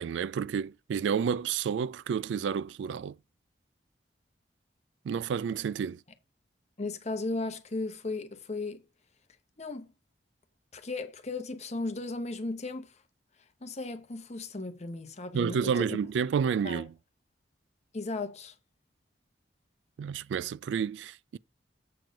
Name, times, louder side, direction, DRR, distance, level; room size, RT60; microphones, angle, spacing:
voice 1, 0.0-3.2 5.1-6.0 15.3-16.9 20.0-21.4, right 7 dB, 80° right, 0.3 m, -30 dB
voice 2, 6.8-8.8 9.6-9.9 10.7-13.0 13.6-16.0 16.6-16.8 17.9-18.5, left 2 dB, 40° left, 0.9 m, -36 dB
7.8 x 4.5 x 5.0 m
head